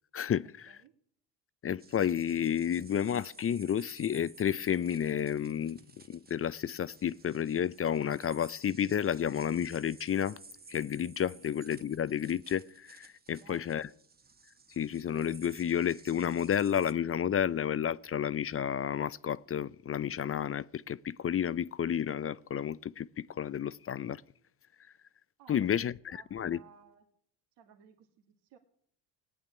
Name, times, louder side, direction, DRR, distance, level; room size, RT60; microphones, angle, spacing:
voice 1, 0.1-0.7 1.6-5.8 6.1-10.4 10.7-13.9 14.8-24.2 25.5-25.9 26.3-26.6, left 9 dB, 30° left, 0.5 m, -31 dB
sound 1, 1.8-16.9, right 4 dB, 20° right, 1.3 m, -56 dB
voice 2, 13.4-13.8 25.4-27.0 27.6-28.6, right 8 dB, 70° right, 2.1 m, -58 dB
17.0 x 8.8 x 9.5 m
supercardioid pair, 85°, 44 cm